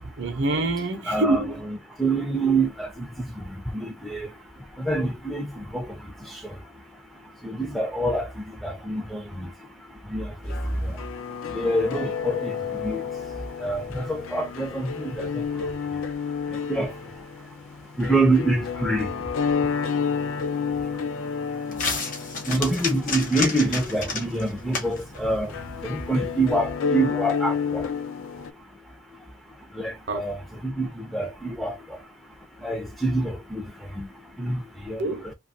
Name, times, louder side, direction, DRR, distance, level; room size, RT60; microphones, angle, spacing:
voice 1, 0.0-1.5 30.1-30.3 35.0-35.3, right 2 dB, 60° right, 0.6 m, -26 dB
voice 2, 1.1-1.4 1.7-4.3 4.8-6.6 7.4-9.5 10.1-11.0 11.5-13.0 13.6-15.7 16.5-17.1 18.0-19.2 22.5-25.5 25.8-27.9 29.7-32.0 32.6-34.1 34.4-35.3, right 2 dB, ahead, 0.4 m, -27 dB
sound 1, 10.5-28.5, left 6 dB, 80° left, 0.4 m, -31 dB
sound 2, 19.7-26.5, left 3 dB, 40° left, 0.7 m, -34 dB
2.7 x 2.3 x 2.6 m
head